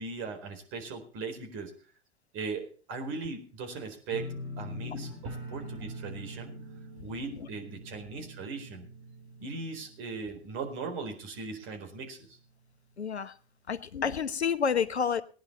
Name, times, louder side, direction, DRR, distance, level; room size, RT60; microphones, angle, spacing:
voice 1, 0.0-1.7 2.3-6.6 7.0-8.9 9.4-12.4, right 4 dB, 40° right, 4.3 m, -39 dB
sound 1, 4.1-11.0 11.3-11.8 12.2-12.3, equal, 65° right, 8.0 m, -43 dB
voice 2, 13.0-13.3 13.7-15.2, left 7 dB, 80° left, 0.9 m, -29 dB
19.0 x 10.5 x 4.1 m
figure-of-eight pair, 85°, 32 cm